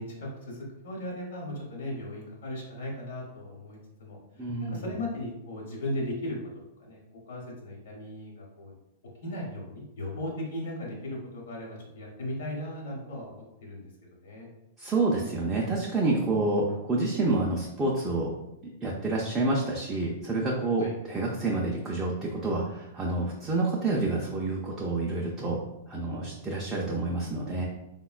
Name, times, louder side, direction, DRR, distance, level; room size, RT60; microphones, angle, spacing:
voice 1, 0.0-4.2 4.7-6.4 6.8-7.0 7.3-8.7 9.2-14.5 20.8-20.9, left 1 dB, 75° left, -2 dB, 0.9 m, -37 dB
voice 2, 4.4-4.8 14.8-18.3 18.8-25.6 25.9-27.6, right 2 dB, 10° right, -4 dB, 0.3 m, -28 dB
3.6 x 2.1 x 2.3 m, 0.90 s
supercardioid pair, 170°, 0 cm